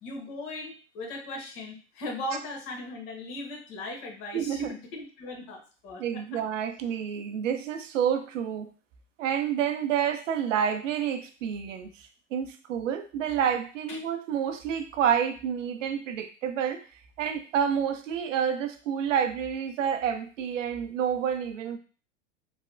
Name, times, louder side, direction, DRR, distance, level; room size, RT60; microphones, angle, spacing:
voice 1, 0.0-6.2 13.9-14.0, left 1 dB, 45° left, 0 dB, 1.1 m, -38 dB
voice 2, 4.3-4.7 6.0-8.7 9.2-16.8 17.2-21.8, right 8 dB, 75° right, 7 dB, 0.6 m, -29 dB
3.1 x 2.0 x 2.4 m, 0.37 s
hypercardioid pair, 105°, 38 cm